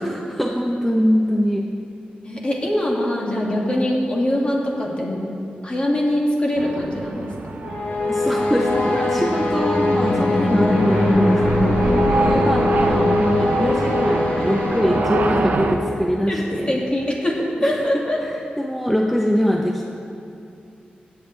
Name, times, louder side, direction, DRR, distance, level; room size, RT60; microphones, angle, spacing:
voice 1, 0.0-1.7 8.1-16.8 17.6-17.8 18.2-19.9, equal, 5° left, 0 dB, 0.6 m, -23 dB
voice 2, 2.2-5.2 5.6-7.6 11.8-12.3 16.3-18.2, left 1 dB, 35° left, -3 dB, 2.1 m, -23 dB
sound 1, 6.6-15.8, right 3 dB, 65° right, 0.7 m, -26 dB
sound 2, 7.6-16.1, left 2 dB, 65° left, 1.8 m, -21 dB
16.0 x 8.5 x 3.2 m, 2.5 s
wide cardioid pair, 100°, 3 cm